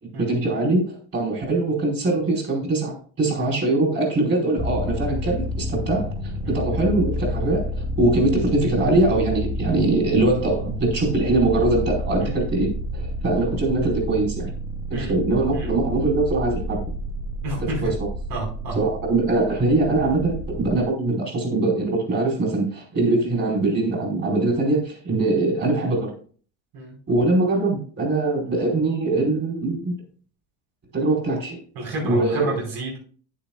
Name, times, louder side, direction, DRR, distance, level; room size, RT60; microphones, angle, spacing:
voice 1, 0.0-6.1 6.5-14.5 14.9-16.8 17.7-18.1 18.7-26.1 27.1-30.0 30.9-31.6 32.0-32.6, right 2 dB, 35° right, 0 dB, 4.5 m, -22 dB
sound 1, 4.6-20.8, equal, 5° right, 0.8 m, -30 dB
voice 2, 17.4-17.9 18.3-18.8 26.7-27.0 31.8-33.0, right 1 dB, 75° right, -2 dB, 5.3 m, -30 dB
11.5 x 9.8 x 2.4 m, 0.42 s
cardioid pair, 140°, 41 cm